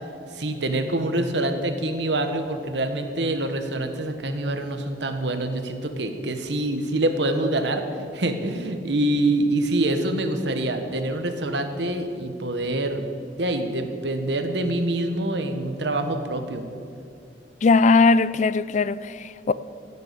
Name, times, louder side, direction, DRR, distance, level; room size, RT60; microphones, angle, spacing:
voice 1, 0.3-7.8 8.1-13.1 13.4-16.6, right 1 dB, 70° right, 1.3 m, -25 dB
voice 2, 17.6-19.5, left 4 dB, 40° left, 0.4 m, -19 dB
15.5 x 6.9 x 8.4 m
head